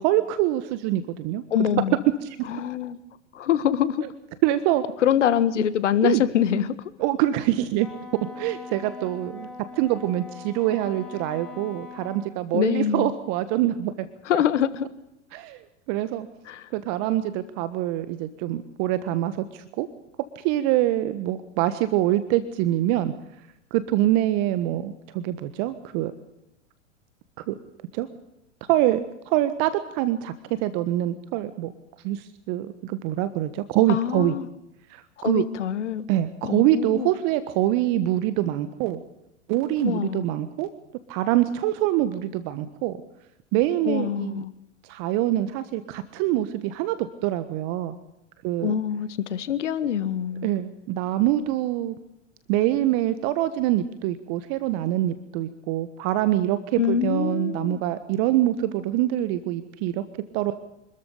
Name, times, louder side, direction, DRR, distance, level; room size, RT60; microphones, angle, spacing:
voice 1, 0.0-1.4 2.2-2.5 4.4-4.8 6.0-6.2 7.0-7.9 8.4-9.5 9.7-13.9 15.3-15.6 15.9-16.3 16.7-19.9 20.3-23.1 23.7-26.1 27.4-27.5 27.9-28.1 28.7-31.7 32.0-34.3 34.9-35.4 36.1-39.0 39.5-40.7 41.1-43.0 43.5-44.4 44.9-48.0 48.4-48.7 50.4-52.0 52.5-60.0 60.3-60.5, right 14 dB, 45° right, 13 dB, 1.5 m, -25 dB
voice 2, 1.5-2.0 2.5-3.0 3.3-4.0 5.0-6.9 12.5-13.1 14.2-14.9 16.5-16.7 33.9-34.5 35.2-36.0 36.4-37.1 39.8-40.2 43.8-44.5 48.6-50.5 56.8-57.8, left 9 dB, 75° left, 16 dB, 1.7 m, -24 dB
Wind instrument woodwind instrument, 7.8-12.3, left 4 dB, 5° left, 6.9 m, -41 dB
25.5 x 13.5 x 8.4 m, 0.86 s
hypercardioid pair, 105°, 37 cm